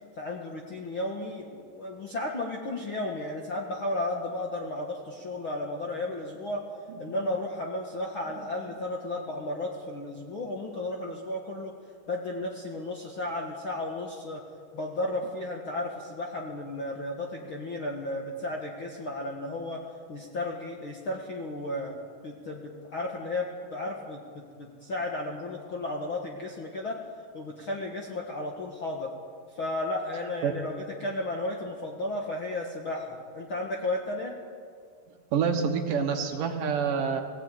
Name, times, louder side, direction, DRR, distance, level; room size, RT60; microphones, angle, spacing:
voice 1, 0.2-6.6 7.0-11.7 12.1-14.4 14.7-19.8 20.1-22.0 22.2-24.2 24.6-27.0 27.3-29.1 29.5-34.3, left 2 dB, 50° left, 0 dB, 1.6 m, -34 dB
voice 2, 35.3-37.2, right 6 dB, 65° right, 5 dB, 2.7 m, -27 dB
20.0 x 15.5 x 9.2 m, 2.2 s
omnidirectional pair, 4.5 m